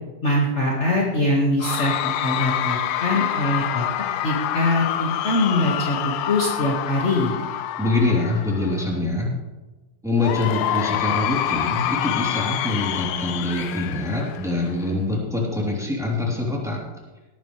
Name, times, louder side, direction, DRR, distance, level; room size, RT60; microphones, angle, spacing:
voice 1, 0.2-3.8 4.2-7.3, left 1 dB, 45° left, -3 dB, 0.8 m, -23 dB
Cheering / Crowd, 1.6-8.9 10.2-14.9, left 11 dB, 85° left, 1.7 m, -27 dB
voice 2, 7.8-9.3 10.0-16.8, left 2 dB, ahead, -3 dB, 2.5 m, -24 dB
18.0 x 10.5 x 3.2 m, 1.2 s
omnidirectional pair, 4.2 m